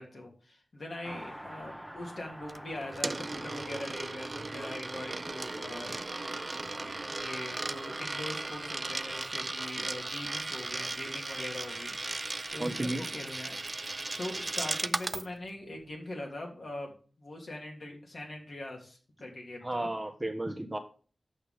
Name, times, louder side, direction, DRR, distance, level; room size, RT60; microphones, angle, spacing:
voice 1, 0.0-6.0 6.5-12.0 12.5-13.6 14.0-19.9, left 1 dB, 65° left, 0 dB, 2.8 m, -42 dB
Car passing by, 1.0-11.0 11.2-11.3, equal, ahead, 1.2 m, -50 dB
Coin (dropping), 2.5-15.3, right 2 dB, 40° right, 0.3 m, -37 dB
voice 2, 12.6-13.1 19.6-20.8, right 1 dB, 20° right, 5 dB, 1.3 m, -33 dB
7.3 x 5.9 x 5.1 m, 0.39 s
cardioid pair, 60°, 0 cm